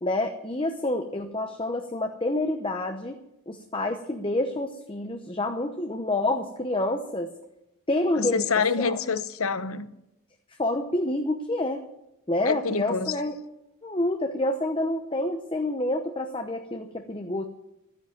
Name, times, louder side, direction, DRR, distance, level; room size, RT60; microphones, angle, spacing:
voice 1, 0.0-3.1 3.5-7.3 7.9-8.5 8.8-9.0 10.6-11.8 12.3-13.3 13.8-17.4, left 1 dB, 25° left, 0.8 m, -28 dB
voice 2, 8.2-9.9 12.4-13.1, left 5 dB, 75° left, 0.9 m, -26 dB
13.5 x 10.0 x 9.2 m
head